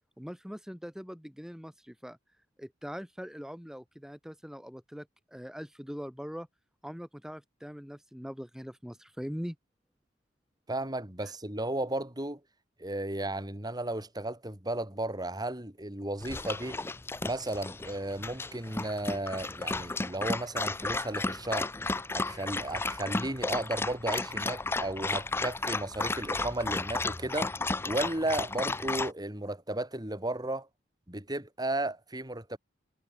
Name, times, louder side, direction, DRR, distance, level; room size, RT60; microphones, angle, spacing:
voice 1, 0.2-2.2 2.6-6.5 6.8-9.6 11.2-11.3, equal, 5° right, 3.2 m, -42 dB
voice 2, 10.7-12.4 12.8-16.8 17.2-21.7 22.1-27.5 27.8-30.7 31.1-32.6, right 1 dB, 20° right, 3.6 m, -34 dB
Dog, 16.2-29.1, left 3 dB, 10° left, 0.4 m, -33 dB
head